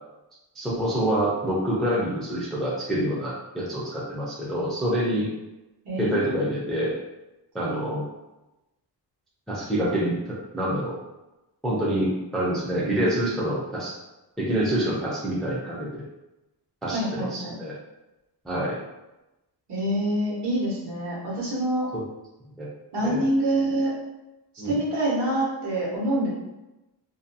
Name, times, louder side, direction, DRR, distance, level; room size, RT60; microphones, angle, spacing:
voice 1, 0.6-5.3 6.0-7.0 7.5-8.0 9.5-11.0 11.6-13.9 14.4-16.0 16.8-17.8 18.4-18.8 21.9-22.0 22.6-22.7 23.0-23.2 24.6-24.8, right 1 dB, ahead, -6 dB, 0.3 m, -26 dB
voice 2, 5.8-6.4 16.9-17.6 19.7-21.9 22.9-23.9 24.6-26.3, right 1 dB, 70° right, -5 dB, 1.1 m, -26 dB
2.5 x 2.2 x 2.5 m, 0.99 s
wide cardioid pair, 180°, 41 cm